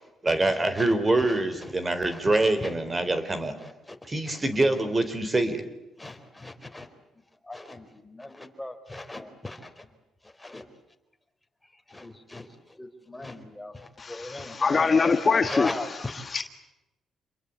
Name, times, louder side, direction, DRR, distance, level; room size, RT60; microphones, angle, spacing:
voice 1, 0.2-3.5 4.1-5.6, right 2 dB, 25° right, 10 dB, 3.9 m, -25 dB
voice 2, 3.6-4.0 4.3-4.4 6.0-6.9 7.5-9.9 10.4-10.6 11.9-12.5 12.8-15.1 15.4-16.1, left 2 dB, 10° left, 6 dB, 4.2 m, -38 dB
voice 3, 14.0-16.4, left 4 dB, 35° left, 7 dB, 1.6 m, -24 dB
28.5 x 22.0 x 8.4 m, 0.95 s
cardioid pair, 90°, 0 cm